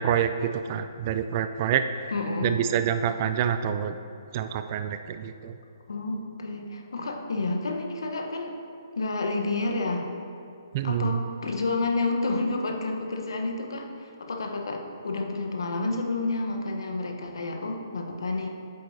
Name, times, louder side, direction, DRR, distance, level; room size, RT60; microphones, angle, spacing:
voice 1, 0.0-2.1 2.4-4.0 4.3-5.5 10.7-11.1, right 8 dB, 35° right, 9 dB, 0.3 m, -27 dB
voice 2, 2.1-2.5 5.9-8.6 9.0-10.1 10.8-18.5, left 2 dB, 75° left, 3 dB, 1.0 m, -30 dB
8.6 x 7.7 x 2.7 m, 2.4 s
hypercardioid pair, 140°, 2 cm